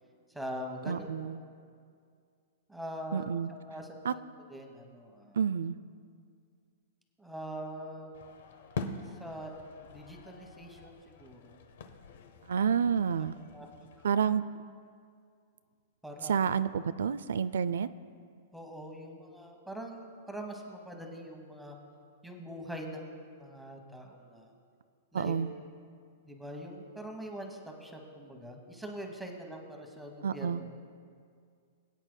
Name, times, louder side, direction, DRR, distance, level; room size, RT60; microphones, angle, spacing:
voice 1, 0.3-1.4 2.7-3.3 3.7-5.4 7.2-8.2 9.1-9.5 9.9-11.6 13.5-13.7 14.0-14.1 16.0-16.5 18.5-21.8 22.2-24.5 25.1-25.3 26.2-30.7, equal, ahead, 1 dB, 1.0 m, -43 dB
voice 2, 0.9-1.4 3.1-3.5 4.0-4.1 5.3-5.8 12.5-13.3 14.0-14.4 16.2-17.9 25.1-25.5 30.2-30.6, right 7 dB, 90° right, 14 dB, 0.3 m, -29 dB
sound 1, 8.1-14.1, left 4 dB, 65° left, 0.8 m, -44 dB
21.5 x 9.0 x 2.2 m, 2.2 s
supercardioid pair, 165°, 0 cm